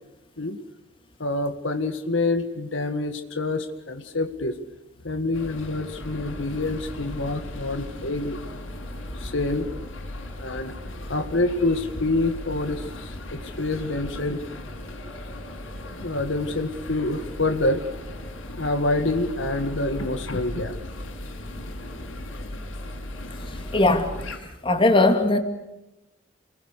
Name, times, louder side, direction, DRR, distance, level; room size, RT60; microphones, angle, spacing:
voice 1, 1.2-4.6 5.0-8.4 9.1-9.7 10.4-10.7 11.0-14.4 16.0-17.8 18.6-20.8, left 2 dB, 70° left, 7 dB, 1.8 m, -27 dB
sound 1, 5.3-24.4, left 1 dB, 90° left, 6.4 m, -37 dB
voice 2, 23.4-24.2 24.6-25.4, left 2 dB, 25° left, 5 dB, 2.7 m, -20 dB
29.0 x 22.0 x 6.6 m, 0.96 s
head